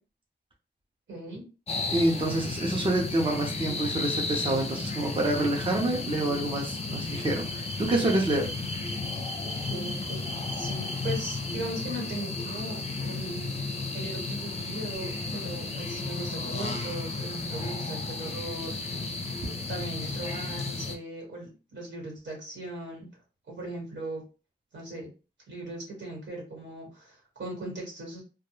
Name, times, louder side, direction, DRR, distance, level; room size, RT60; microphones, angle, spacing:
voice 1, 1.1-1.4 9.7-10.3 10.5-13.6 13.9-19.1 19.7-23.1 23.5-24.2 24.7-25.1 25.5-28.2, right 1 dB, 85° right, -1 dB, 1.4 m, -39 dB
sound 1, 1.7-21.0, left 3 dB, 35° left, 0.4 m, -33 dB
voice 2, 1.9-8.5, right 1 dB, 30° right, 0 dB, 0.6 m, -27 dB
2.3 x 2.2 x 3.0 m, 0.32 s
wide cardioid pair, 125°, 19 cm